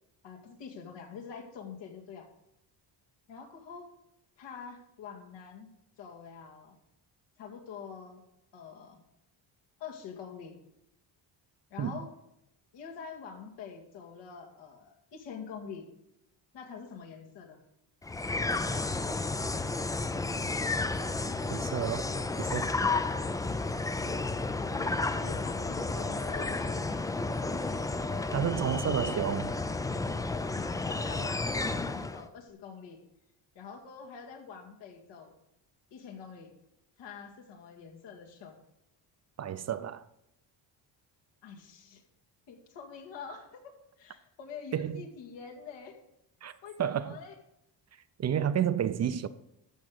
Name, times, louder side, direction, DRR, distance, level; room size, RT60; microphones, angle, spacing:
voice 1, 0.2-2.3 3.3-3.9 4.4-5.7 6.0-6.8 7.4-8.2 8.5-9.0 9.8-10.6 11.7-12.1 12.7-15.9 16.5-17.6 24.6-27.1 30.5-33.0 33.5-35.3 35.9-36.5 37.0-38.6 41.4-42.0 42.5-43.7 44.0-46.0 46.6-47.4, left 6 dB, 80° left, 2.3 m, -45 dB
sound 1, 18.0-32.3, left 3 dB, 10° left, 0.3 m, -32 dB
voice 2, 21.5-22.1 22.4-22.7 28.3-29.5 39.4-40.1 44.7-45.1 46.4-46.5 46.8-47.2 48.2-49.3, right 9 dB, 40° right, 0.6 m, -30 dB
13.5 x 5.2 x 6.5 m
cardioid pair, 115°, 43 cm